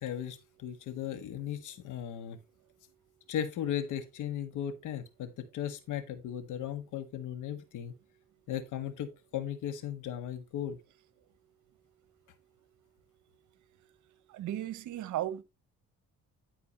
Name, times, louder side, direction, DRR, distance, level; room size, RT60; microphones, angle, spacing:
voice 1, 0.0-2.4 3.3-7.9 8.5-10.8, left 10 dB, 80° left, 1.5 m, -37 dB
voice 2, 14.3-15.4, right 12 dB, 75° right, 0.9 m, -35 dB
10.5 x 4.4 x 4.2 m
cardioid pair, 90°, 30 cm